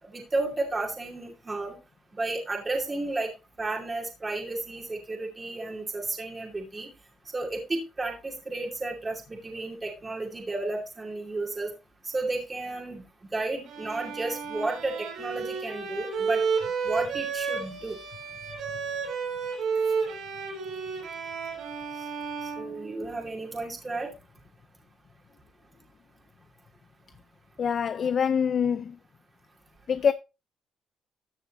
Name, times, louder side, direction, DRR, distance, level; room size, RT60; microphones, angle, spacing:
voice 1, 0.0-1.8 2.1-3.3 3.6-6.9 7.3-11.7 12.0-13.0 13.3-16.5 16.8-18.0 22.4-24.1, right 2 dB, 25° right, 2.6 m, -32 dB
Bowed string instrument, 13.7-23.4, right 5 dB, 80° right, 3.8 m, -32 dB
voice 2, 27.6-29.0 29.9-30.1, left 7 dB, 55° left, 0.5 m, -25 dB
14.0 x 6.8 x 3.0 m
cardioid pair, 90°, 0 cm